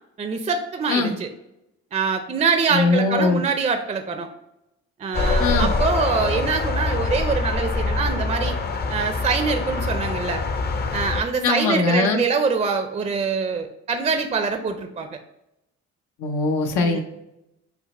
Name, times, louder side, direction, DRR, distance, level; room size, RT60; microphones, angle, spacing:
voice 1, 0.2-1.3 1.9-4.3 5.0-8.6 8.9-10.4 10.9-15.2 16.8-17.0, right 5 dB, 25° right, 6 dB, 0.4 m, -24 dB
voice 2, 2.7-3.4 5.4-5.7 11.4-12.2 16.2-17.0, left 3 dB, 80° left, 3 dB, 0.7 m, -21 dB
sound 1, 5.1-11.2, left 3 dB, 35° left, 0.5 m, -24 dB
5.8 x 2.1 x 4.0 m, 0.87 s
cardioid pair, 90°, 30 cm